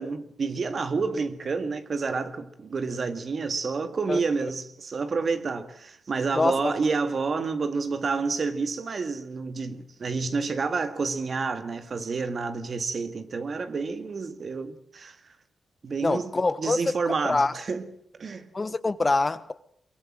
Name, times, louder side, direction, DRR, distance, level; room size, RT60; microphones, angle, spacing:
voice 1, 0.0-15.3 15.8-16.3 16.6-17.9 18.1-18.5, right 4 dB, 50° right, 2.1 m, -29 dB
voice 2, 6.3-6.7 16.0-16.8 17.1-17.5 18.5-19.5, left 3 dB, 30° left, 1.1 m, -25 dB
23.5 x 23.0 x 7.7 m
cardioid pair, 95°, 0 cm